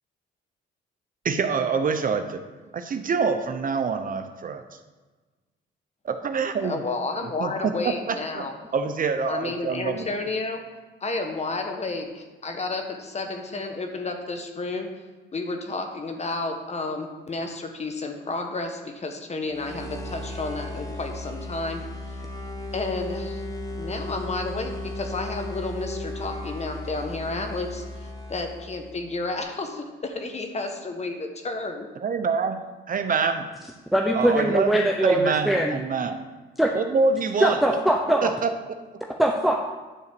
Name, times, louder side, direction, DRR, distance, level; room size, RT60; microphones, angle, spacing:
voice 1, 1.2-2.4 2.7-4.6 6.0-6.7 7.4-8.4 8.7-10.1 32.0-32.6 32.9-33.5 34.1-34.7 35.0-36.2 36.7-37.6 38.2-38.5, right 5 dB, 45° right, 8 dB, 0.7 m, -25 dB
voice 2, 6.6-8.5 9.3-10.6 11.0-14.9 15.3-21.8 22.1-22.2 22.7-23.4 23.8-31.9, left 3 dB, 35° left, 4 dB, 1.3 m, -31 dB
sound 1, 19.5-29.0, left 1 dB, 15° left, 1.5 m, -35 dB
voice 3, 33.9-35.8 36.6-36.7 37.4-38.3 39.2-39.6, right 1 dB, ahead, 1 dB, 0.7 m, -21 dB
10.0 x 4.0 x 6.8 m, 1.3 s
cardioid pair, 90°, 20 cm